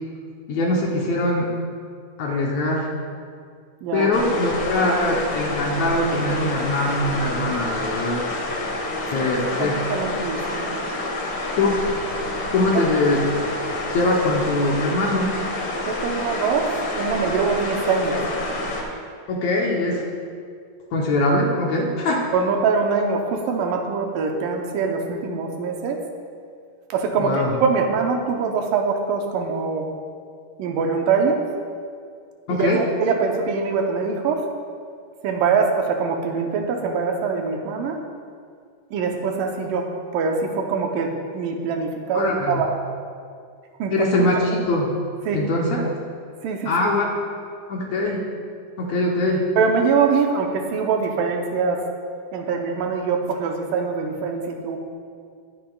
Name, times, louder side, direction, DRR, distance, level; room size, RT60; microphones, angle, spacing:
voice 1, 0.5-1.5 2.2-2.9 3.9-8.3 9.1-9.8 11.6-11.9 12.5-13.2 13.9-15.3 18.1-18.3 19.3-20.0 20.9-22.3 27.2-27.5 32.5-32.8 42.1-42.6 43.9-44.9 45.3-45.9 46.7-47.1 47.7-48.3 48.8-49.5, left 2 dB, 70° left, -1 dB, 1.8 m, -22 dB
sound 1, 4.1-18.8, left 2 dB, 55° left, 2.0 m, -28 dB
voice 2, 9.6-10.7 15.9-18.2 19.8-19.9 22.3-26.0 26.9-29.9 30.6-31.4 32.5-34.4 35.2-38.0 38.9-42.7 43.8-44.1 45.3-45.4 46.4-46.9 49.6-51.8 52.3-54.8, right 5 dB, 85° right, 3 dB, 2.5 m, -23 dB
19.5 x 7.6 x 2.3 m, 2.2 s
omnidirectional pair, 3.9 m